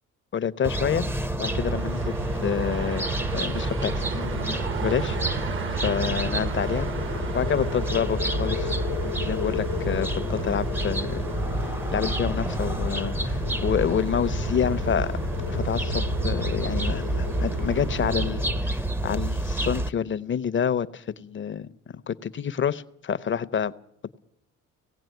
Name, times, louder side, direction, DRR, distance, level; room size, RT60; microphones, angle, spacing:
voice 1, 0.3-1.1 1.4-2.1 2.4-3.1 3.3-5.5 5.8-6.9 7.3-8.8 9.0-11.2 11.6-15.1 15.5-21.7 22.1-23.7, left 8 dB, 40° left, 15 dB, 0.8 m, -28 dB
sound 1, 0.6-19.9, right 1 dB, 5° right, 0.7 m, -29 dB
sound 2, 1.4-18.3, right 6 dB, 45° right, 0.9 m, -35 dB
sound 3, 2.2-18.6, left 9 dB, 80° left, 0.9 m, -36 dB
18.5 x 15.5 x 9.2 m, 0.74 s
cardioid pair, 90°, 30 cm